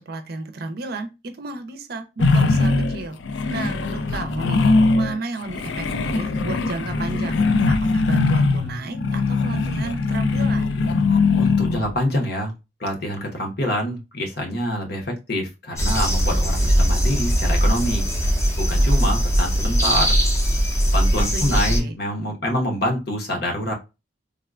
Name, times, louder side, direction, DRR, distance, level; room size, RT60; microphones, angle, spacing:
voice 1, 0.1-1.1 1.4-3.2 3.5-4.6 4.9-7.4 7.7-10.8 21.3-21.9, right 3 dB, 55° right, 0.5 m, -32 dB
sound 1, 2.2-5.2 5.5-12.0, left 3 dB, 75° left, 0.4 m, -21 dB
voice 2, 11.3-12.5 12.8-18.1 18.6-20.2 20.9-23.7, left 1 dB, 55° left, 0.8 m, -26 dB
sound 2, 15.8-21.8, equal, 15° left, 0.6 m, -20 dB
3.5 x 2.2 x 2.3 m
head